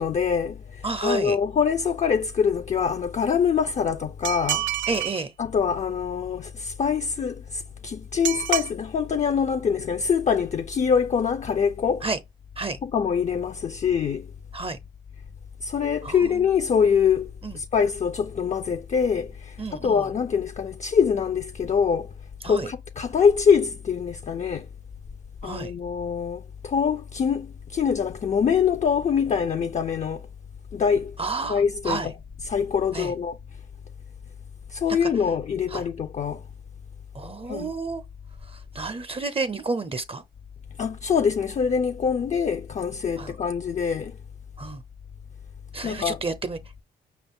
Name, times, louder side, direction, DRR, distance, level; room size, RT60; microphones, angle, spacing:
voice 1, 0.0-4.7 5.4-12.0 12.8-14.3 15.6-22.1 22.4-24.7 25.4-30.2 30.7-31.2 31.5-32.0 32.5-33.4 34.7-36.4 37.5-37.7 40.8-44.1 45.8-46.2, left 6 dB, 40° left, 0.4 m, -24 dB
voice 2, 0.8-1.4 4.9-5.3 12.0-12.2 12.6-12.8 14.5-14.8 16.0-16.5 17.4-17.6 19.6-20.1 22.4-22.7 25.4-25.7 31.2-32.1 32.9-33.1 34.9-35.1 35.7-35.8 37.1-38.0 38.5-40.2 43.2-43.3 44.6-44.8 45.7-46.8, right 3 dB, 30° right, 0.5 m, -31 dB
sound 1, 4.2-5.2 8.2-8.7, right 12 dB, 80° right, 0.5 m, -27 dB
5.1 x 2.3 x 3.5 m
supercardioid pair, 55°, 19 cm